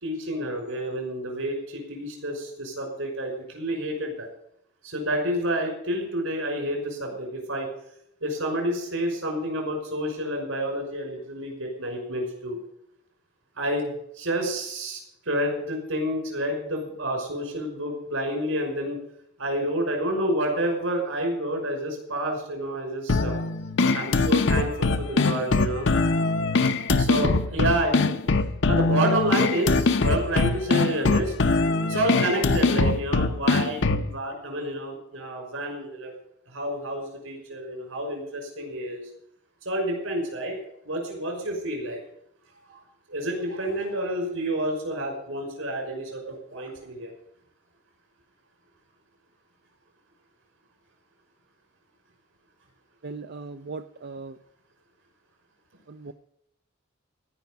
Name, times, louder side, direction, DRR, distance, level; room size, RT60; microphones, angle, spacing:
voice 1, 0.0-4.3 4.8-7.7 8.2-12.6 13.6-15.0 15.3-19.0 19.4-23.4 23.9-25.9 27.0-28.1 28.7-31.3 31.9-36.1 36.5-39.0 39.7-40.6 40.9-42.0 42.7-42.8 43.1-47.1, right 1 dB, 70° right, 2 dB, 5.7 m, -29 dB
sound 1, 23.1-34.1, left 3 dB, 60° left, 0.8 m, -22 dB
voice 2, 53.0-54.4 55.9-56.1, right 3 dB, 50° right, 9 dB, 0.5 m, -38 dB
16.5 x 5.9 x 9.2 m, 0.74 s
head